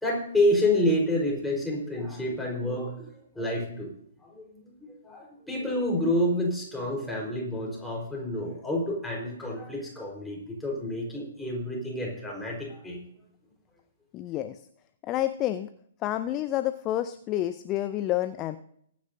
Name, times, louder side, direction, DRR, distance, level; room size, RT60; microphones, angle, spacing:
voice 1, 0.0-3.9 4.2-13.0, left 1 dB, 5° left, -2 dB, 4.2 m, -29 dB
voice 2, 14.1-14.6 15.0-15.7 16.0-18.6, left 13 dB, 25° left, 11 dB, 0.5 m, -29 dB
22.0 x 9.4 x 2.7 m, 0.69 s
figure-of-eight pair, 125°, 0 cm